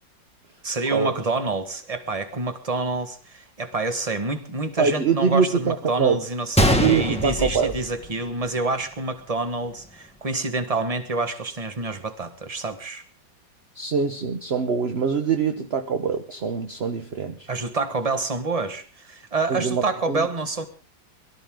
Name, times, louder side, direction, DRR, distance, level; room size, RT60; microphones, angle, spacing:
voice 1, 0.6-13.0 17.5-20.7, right 3 dB, 20° right, 9 dB, 1.4 m, -27 dB
voice 2, 4.8-6.2 6.8-7.7 13.7-17.5 19.5-20.3, right 6 dB, 45° right, 7 dB, 0.9 m, -24 dB
Gunshot gunfire, 6.6-8.6 8.9-9.0 9.6-9.9, equal, 5° left, 1.2 m, -23 dB
23.0 x 13.5 x 3.7 m, 0.39 s
omnidirectional pair, 2.1 m